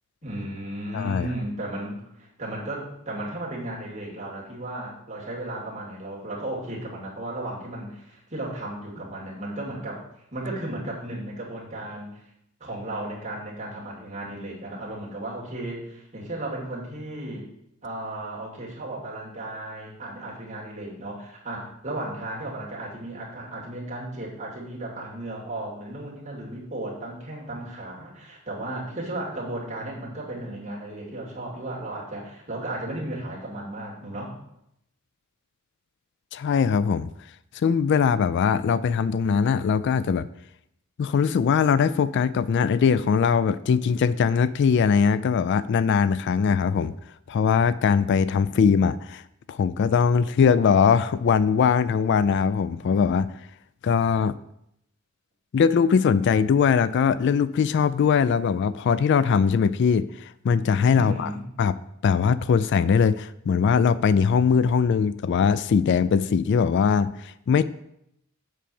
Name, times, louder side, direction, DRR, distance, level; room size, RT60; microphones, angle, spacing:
voice 1, 0.2-10.0 10.3-12.3 12.6-17.5 17.8-34.3 60.9-61.4, right 1 dB, 35° right, -4 dB, 2.5 m, -35 dB
voice 2, 0.9-1.3 36.3-37.1 37.5-40.3 41.0-46.9 47.3-49.2 49.5-53.3 53.8-54.4 55.5-61.3 61.6-61.7 62.0-67.6, left 6 dB, 60° left, 16 dB, 0.3 m, -21 dB
7.5 x 4.6 x 7.0 m, 0.78 s
head